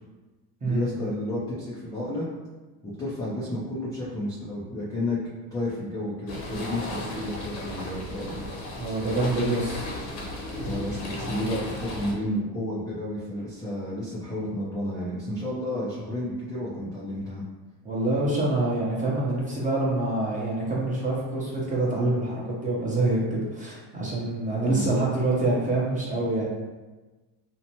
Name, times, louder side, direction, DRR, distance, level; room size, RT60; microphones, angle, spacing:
voice 1, 0.6-2.2 2.8-5.2 5.5-8.4 10.6-17.4 24.5-24.9, left 1 dB, 10° left, -8 dB, 0.4 m, -31 dB
sound 1, 6.3-12.1, left 1 dB, 55° left, 0.8 m, -35 dB
voice 2, 8.8-9.9 17.8-26.4, right 2 dB, 15° right, -5 dB, 0.8 m, -26 dB
2.8 x 2.1 x 2.8 m, 1.2 s
supercardioid pair, 105°, 49 cm